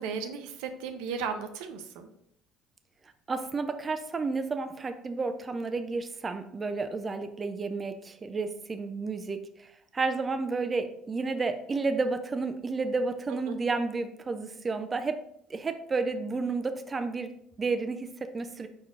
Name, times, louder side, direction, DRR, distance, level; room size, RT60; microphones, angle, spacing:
voice 1, 0.0-2.1 13.5-13.6, right 6 dB, 85° right, 7 dB, 0.5 m, -35 dB
voice 2, 3.3-15.2 15.5-18.7, right 3 dB, 30° right, 8 dB, 0.4 m, -31 dB
4.6 x 4.4 x 2.5 m, 0.73 s
supercardioid pair, 95°, 0 cm